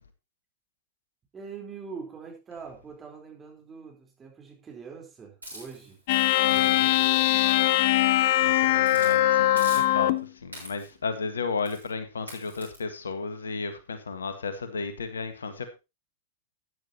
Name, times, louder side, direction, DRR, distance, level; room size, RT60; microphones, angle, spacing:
voice 1, 1.3-6.0 6.4-7.9, right 5 dB, 20° right, 4.3 m, -44 dB
Hiss, 5.4-8.3 8.8-9.2 9.6-10.2 10.5-11.0 11.6-11.9 12.3-12.8, right 1 dB, 85° right, 6.7 m, -45 dB
sound 1, 6.1-10.3, left 14 dB, 50° left, 0.7 m, -22 dB
voice 2, 6.4-6.9 8.4-10.1 10.4-15.8, left 4 dB, 75° left, 1.7 m, -34 dB
13.0 x 10.0 x 3.0 m
figure-of-eight pair, 100°, 0 cm